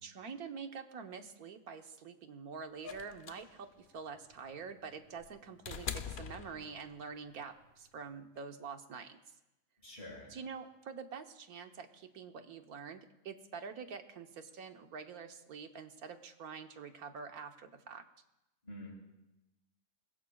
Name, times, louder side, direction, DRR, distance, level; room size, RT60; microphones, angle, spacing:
voice 1, 0.0-9.2 10.3-18.0, right 5 dB, 85° right, 6 dB, 1.6 m, -46 dB
sound 1, 2.8-7.1 8.4-8.5, left 7 dB, 55° left, 0.6 m, -44 dB
voice 2, 9.8-10.3 18.6-19.0, left 1 dB, 30° left, -6 dB, 6.2 m, -47 dB
27.0 x 21.0 x 2.3 m, 0.95 s
omnidirectional pair, 1.5 m